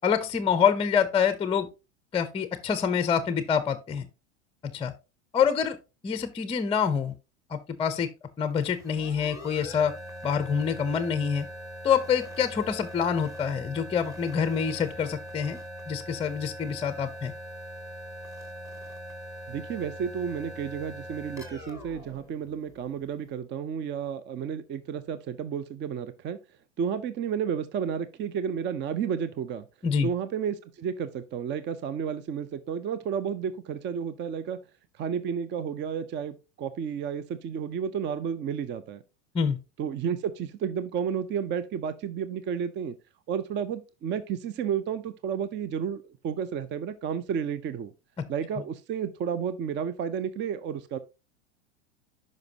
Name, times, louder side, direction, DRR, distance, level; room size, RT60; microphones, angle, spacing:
voice 1, 0.0-1.7 2.1-4.1 4.7-4.9 5.3-5.8 6.0-7.1 7.5-8.1 8.4-9.9 10.2-11.5 11.8-15.6 15.9-17.3 29.8-30.1 39.3-39.6, left 7 dB, 15° left, 0.7 m, -26 dB
sound 1, 8.5-23.1, equal, 10° right, 1.9 m, -42 dB
voice 2, 19.5-26.4 26.8-29.7 30.0-34.6 35.0-39.0 39.8-43.0 43.3-47.9 48.3-51.0, right 7 dB, 30° right, 0.6 m, -32 dB
10.5 x 5.3 x 2.8 m
hypercardioid pair, 105°, 36 cm